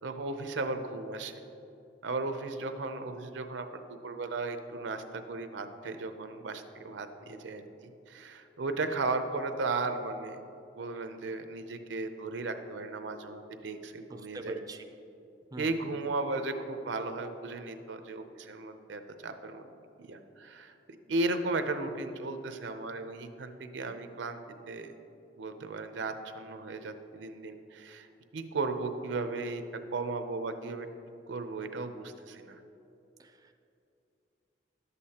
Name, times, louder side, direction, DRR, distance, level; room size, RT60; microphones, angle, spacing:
voice 1, 0.0-1.4 2.0-10.4 10.8-14.6 15.6-19.7 20.0-20.8 21.1-24.4 24.7-24.9 25.4-28.1 28.3-29.6 29.9-30.9 31.3-32.6, right 3 dB, 90° right, 8 dB, 0.6 m, -35 dB
voice 2, 14.1-14.8 15.5-15.8 33.2-33.5, right 2 dB, 20° right, 6 dB, 0.3 m, -43 dB
11.0 x 8.2 x 2.9 m, 2.8 s
head